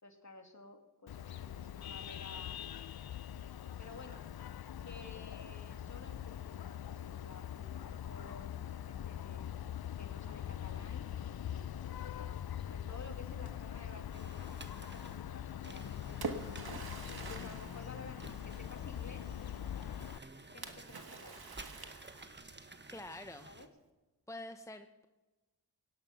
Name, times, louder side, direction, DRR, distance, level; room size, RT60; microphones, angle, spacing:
voice 1, 0.0-2.6 3.8-4.3 4.8-9.5 10.0-16.8 17.2-19.4 20.5-21.5 23.4-23.7, left 3 dB, 40° left, 5 dB, 2.5 m, -53 dB
Vehicle horn car horn honking, 1.1-20.2, left 10 dB, 60° left, 0.6 m, -43 dB
sound 1, 14.1-23.7, right 2 dB, 25° right, 1.4 m, -53 dB
Splash splatter, 15.6-18.8 20.6-22.6, right 4 dB, 60° right, 1.6 m, -45 dB
voice 2, 17.4-17.8 22.6-23.5 24.3-25.1, left 1 dB, 5° left, 7 dB, 0.9 m, -48 dB
17.5 x 11.0 x 5.9 m, 1.1 s
cardioid pair, 40°, 42 cm